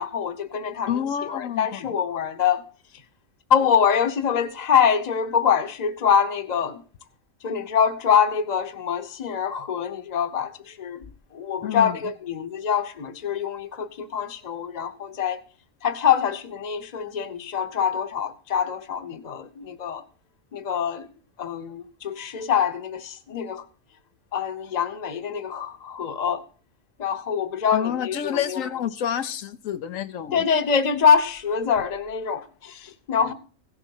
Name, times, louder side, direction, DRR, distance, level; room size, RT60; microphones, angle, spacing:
voice 1, 0.0-0.9 1.3-2.6 3.5-6.8 7.4-11.0 11.3-15.4 15.8-20.0 20.5-21.1 21.4-23.6 24.3-26.4 27.0-28.6 30.3-33.3, left 7 dB, 35° left, 0.9 m, -24 dB
voice 2, 0.9-1.9 11.6-12.0 27.7-30.4, left 9 dB, 90° left, 1.2 m, -29 dB
16.5 x 7.4 x 4.5 m
omnidirectional pair, 1.3 m